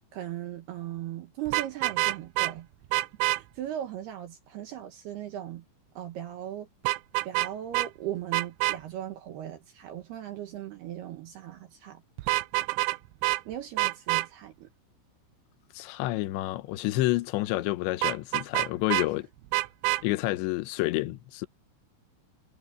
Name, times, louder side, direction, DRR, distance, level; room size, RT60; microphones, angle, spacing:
voice 1, 0.1-2.7 3.3-5.7 6.0-6.7 7.2-12.0 13.5-14.7 19.1-19.2, right 12 dB, 75° right, 2.5 m, -38 dB
Vehicle horn car horn honking, 1.5-2.5 2.9-3.4 6.8-7.5 7.7-7.9 8.3-8.8 12.2-13.0 13.2-13.4 13.8-14.3 18.0-19.1 19.5-20.0, right 21 dB, 90° right, 2.6 m, -26 dB
voice 2, 15.7-19.3 20.0-21.5, left 18 dB, 80° left, 2.9 m, -29 dB
omnidirectional pair, 6.0 m